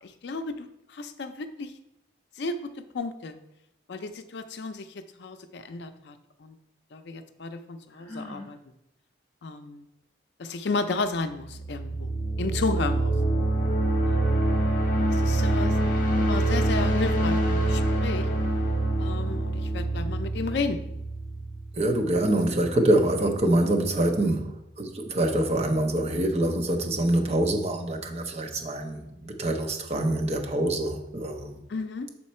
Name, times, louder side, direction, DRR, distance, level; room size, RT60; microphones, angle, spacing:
voice 1, 0.0-1.7 2.4-3.4 3.9-4.9 5.2-6.5 6.9-8.6 9.4-9.9 10.4-12.1 12.4-13.1 14.0-14.4 15.1-15.8 16.3-18.3 19.0-20.8 31.7-32.1, left 3 dB, 65° left, 9 dB, 0.5 m, -33 dB
Sigh, 7.9-8.5, left 2 dB, 15° left, 1.8 m, -41 dB
sound 1, 11.4-22.2, right 1 dB, 45° left, 0.9 m, -25 dB
voice 2, 21.8-31.6, right 1 dB, 35° right, 4 dB, 0.7 m, -25 dB
6.3 x 4.4 x 4.2 m, 0.84 s
head